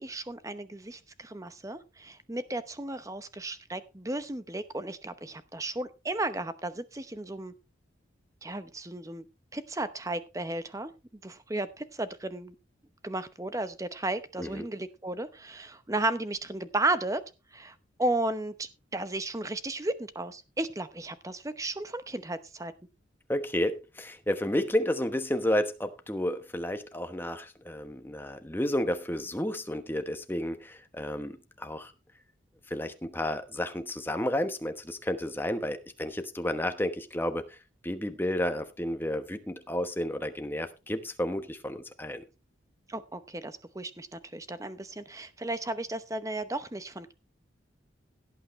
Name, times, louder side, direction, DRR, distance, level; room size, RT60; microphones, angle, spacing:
voice 1, 0.0-7.5 8.4-9.2 9.5-10.9 11.2-12.5 13.0-17.2 17.5-22.7 42.9-47.1, right 2 dB, 15° right, 0.8 m, -34 dB
voice 2, 23.3-31.9 32.7-37.6 37.8-42.2, left 1 dB, 10° left, 1.0 m, -31 dB
17.0 x 8.6 x 3.2 m
head